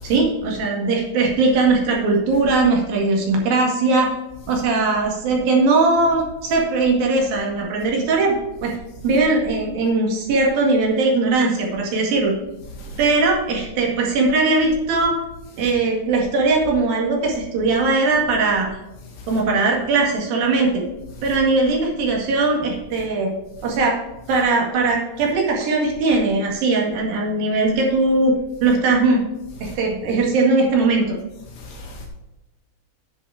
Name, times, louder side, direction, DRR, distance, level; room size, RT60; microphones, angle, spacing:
voice 1, 0.0-4.1 4.5-8.8 9.0-12.3 13.0-15.2 15.6-18.7 19.3-20.8 21.2-23.3 23.6-24.0 24.3-28.3 28.6-29.2 29.6-31.2, right 3 dB, 70° right, 3.7 m, -19 dB
voice 2, 31.5-32.1, left 1 dB, 80° left, 4.2 m, -37 dB
10.5 x 7.1 x 4.8 m
omnidirectional pair, 4.5 m